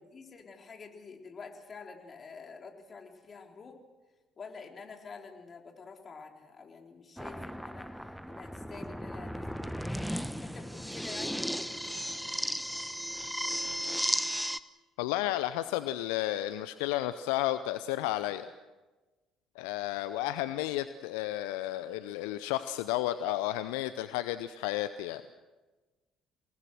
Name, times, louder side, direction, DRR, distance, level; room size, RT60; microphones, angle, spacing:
voice 1, 0.0-3.8 4.4-9.9 10.4-12.0, left 5 dB, 40° left, 2 dB, 3.9 m, -48 dB
sound 1, 7.2-14.6, equal, ahead, 1.1 m, -35 dB
voice 2, 15.0-18.5 19.6-25.2, left 14 dB, 75° left, 12 dB, 0.6 m, -32 dB
28.5 x 19.0 x 6.3 m, 1.2 s
hypercardioid pair, 55°, 0 cm